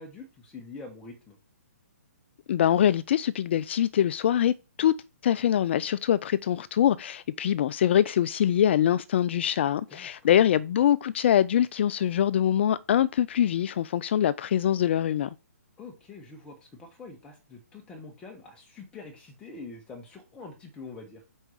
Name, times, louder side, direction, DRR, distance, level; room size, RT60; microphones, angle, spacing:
voice 1, 0.0-1.4 9.9-10.6 15.8-21.2, left 3 dB, 10° left, 1.2 m, -45 dB
voice 2, 2.5-4.9 5.2-15.3, left 10 dB, 45° left, 0.3 m, -24 dB
5.4 x 4.5 x 6.3 m
hypercardioid pair, 150°, 8 cm